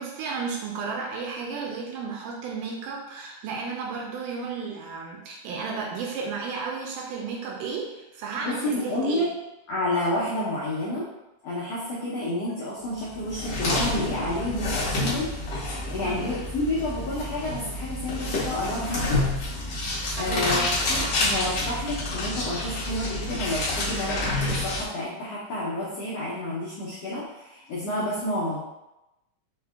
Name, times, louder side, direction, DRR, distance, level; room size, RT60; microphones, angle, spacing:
voice 1, 0.0-9.3 16.0-16.4 20.2-20.7, right 5 dB, 80° right, -1 dB, 2.0 m, -33 dB
voice 2, 8.4-9.3 9.7-11.1 11.4-19.3 20.2-28.6, left 1 dB, 90° left, -7 dB, 1.4 m, -30 dB
sound 1, 13.1-24.8, left 2 dB, 65° left, 1.6 m, -28 dB
5.4 x 2.2 x 3.4 m, 0.95 s
omnidirectional pair, 4.0 m